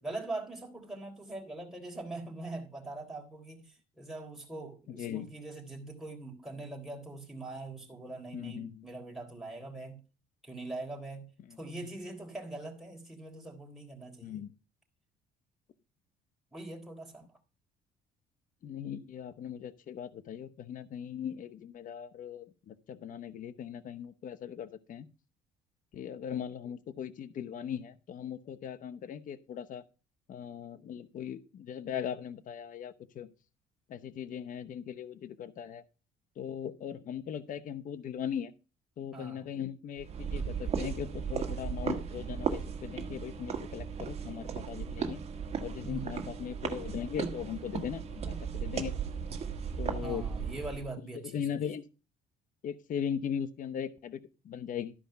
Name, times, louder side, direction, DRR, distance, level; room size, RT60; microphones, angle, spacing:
voice 1, 0.0-10.0 10.4-11.3 11.6-14.4 16.5-17.2 39.1-39.5 45.8-46.3 50.0-51.4, right 2 dB, ahead, 3.4 m, -42 dB
voice 2, 4.9-5.3 8.3-8.8 11.5-11.6 14.2-14.5 18.6-25.1 25.9-29.8 30.3-33.3 33.9-35.8 36.4-38.5 39.0-45.2 45.6-48.9 49.8-50.2 51.2-51.8 52.6-54.2 54.4-54.9, left 8 dB, 55° left, 0.9 m, -39 dB
sound 1, 40.0-50.9, right 6 dB, 40° right, 1.6 m, -36 dB
12.5 x 5.2 x 5.7 m
cardioid pair, 110°, 17 cm